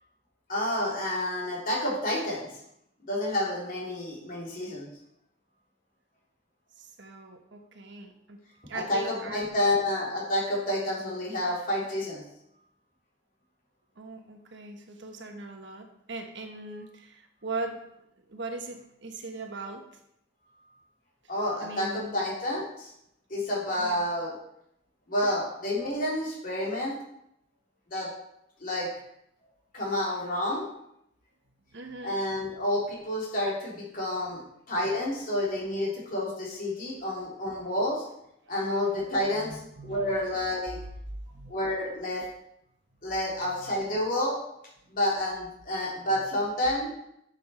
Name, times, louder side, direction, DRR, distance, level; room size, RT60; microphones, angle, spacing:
voice 1, 0.5-2.5 3.1-4.9 8.7-12.2 21.3-22.9 23.3-24.3 25.1-26.9 27.9-28.1 28.6-28.9 29.7-30.6 32.0-34.4 34.7-38.0 38.5-40.8 41.5-42.2 43.0-44.4 44.9-46.9, left 1 dB, 45° left, -3 dB, 3.2 m, -29 dB
voice 2, 6.8-8.4 8.7-9.4 14.0-17.8 18.3-19.8 21.6-22.2 23.8-24.0 25.2-25.3 31.7-32.2 37.5-37.6 38.9-40.3 41.3-41.5 43.6-43.7, right 3 dB, 60° right, 4 dB, 1.2 m, -40 dB
10.0 x 6.6 x 4.3 m, 0.78 s
head